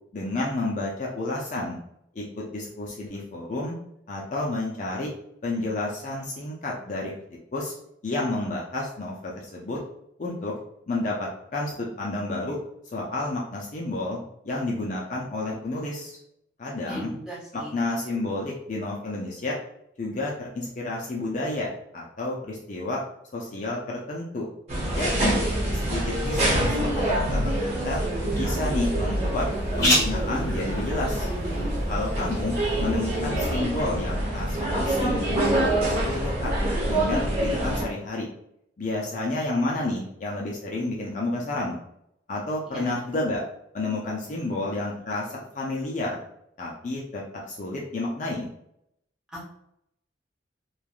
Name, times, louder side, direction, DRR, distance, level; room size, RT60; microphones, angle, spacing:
voice 1, 0.1-1.8 2.1-3.8 4.1-5.1 5.4-7.1 7.5-7.7 8.0-9.8 10.2-10.5 10.9-12.6 12.9-14.2 14.4-16.2 16.6-17.1 17.5-19.6 20.0-23.0 23.3-24.5 24.9-25.4 25.9-28.0 28.4-29.5 29.8-31.3 31.9-35.3 35.6-36.5 36.9-38.3 38.8-41.8 42.3-43.4 43.7-46.2 46.6-48.5, left 2 dB, 40° left, -3 dB, 0.4 m, -30 dB
voice 2, 16.9-17.7 42.7-42.9 49.3-49.5, equal, 5° right, -7 dB, 0.9 m, -38 dB
sound 1, 24.7-37.9, right 1 dB, 35° right, 1.0 m, -26 dB
sound 2, 25.8-33.3, left 1 dB, 20° left, 1.1 m, -33 dB
3.2 x 2.2 x 2.4 m, 0.75 s
head